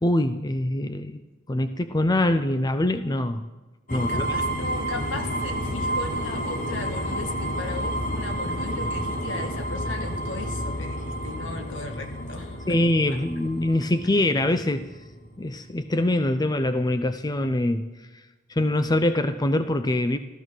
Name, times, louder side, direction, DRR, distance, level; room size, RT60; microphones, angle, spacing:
voice 1, 0.0-1.2 1.5-3.5 3.9-4.3 12.7-14.9 15.4-17.9 18.5-20.2, left 1 dB, 20° left, 10 dB, 0.5 m, -24 dB
voice 2, 3.9-12.8, left 2 dB, 75° left, 5 dB, 1.8 m, -37 dB
sound 1, 3.9-15.7, equal, 45° left, 1.6 m, -30 dB
15.0 x 14.0 x 6.2 m, 1.1 s
head